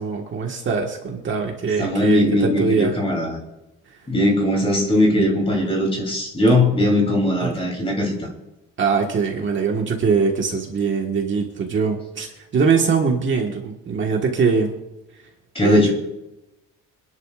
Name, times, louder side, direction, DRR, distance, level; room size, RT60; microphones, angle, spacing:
voice 1, 0.0-3.0 3.9-4.0 7.4-7.5 8.8-14.7 15.6-15.9, right 5 dB, 35° right, 1 dB, 1.6 m, -22 dB
voice 2, 1.8-3.4 4.1-8.1 15.5-15.9, left 1 dB, 15° left, 0 dB, 3.3 m, -19 dB
26.5 x 11.0 x 2.5 m, 0.95 s
cardioid pair, 180°, 33 cm